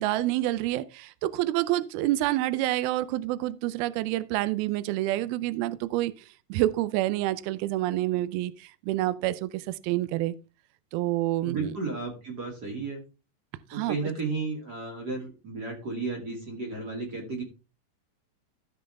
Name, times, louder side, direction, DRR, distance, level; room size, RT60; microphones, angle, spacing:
voice 1, 0.0-6.1 6.5-10.3 10.9-11.8 13.7-14.0, right 15 dB, 80° right, 2.3 m, -28 dB
voice 2, 11.4-13.0 13.7-17.4, right 3 dB, 30° right, 2.3 m, -33 dB
15.5 x 5.5 x 3.5 m
omnidirectional pair, 5.0 m